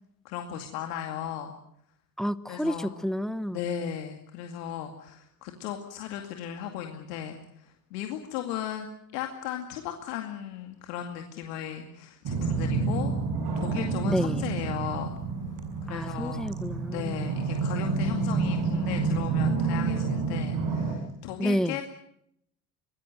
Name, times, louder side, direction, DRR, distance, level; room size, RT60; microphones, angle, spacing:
voice 1, 0.2-1.5 2.5-3.0 3.5-8.9 9.1-13.1 13.6-15.1 15.8-16.4 16.9-21.8, left 10 dB, 70° left, 4 dB, 2.4 m, -36 dB
voice 2, 2.2-3.6 14.0-14.5 15.9-17.2 21.4-21.8, equal, ahead, 18 dB, 0.9 m, -30 dB
sound 1, 12.3-20.9, right 4 dB, 45° right, 7.1 m, -29 dB
24.5 x 20.0 x 7.8 m, 0.75 s
hypercardioid pair, 70°, 49 cm